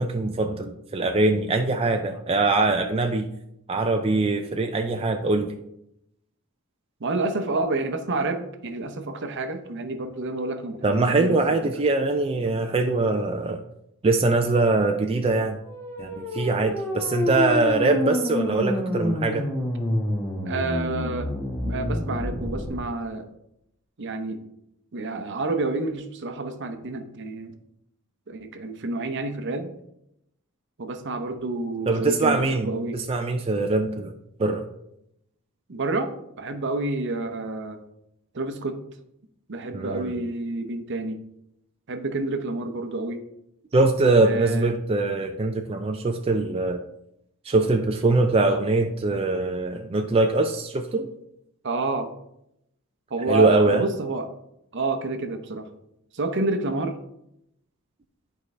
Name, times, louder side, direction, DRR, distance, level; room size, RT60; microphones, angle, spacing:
voice 1, 0.0-3.3 3.7-5.5 10.8-13.6 14.0-15.6 16.0-19.5 31.9-34.1 34.4-34.7 39.7-40.2 43.7-46.8 47.4-51.1 53.3-53.8, right 3 dB, 25° right, 4 dB, 0.4 m, -22 dB
voice 2, 7.0-11.8 20.4-21.3 21.6-23.3 24.0-24.4 24.9-27.5 28.3-29.7 30.8-32.9 35.7-36.1 36.4-37.8 38.3-38.8 39.5-41.2 41.9-43.2 44.2-44.7 51.6-52.1 53.1-54.3 54.7-55.7 56.1-57.0, right 2 dB, 55° right, 7 dB, 0.8 m, -29 dB
sound 1, 15.6-22.7, left 1 dB, 15° left, 1.2 m, -28 dB
11.0 x 4.7 x 3.2 m, 0.81 s
head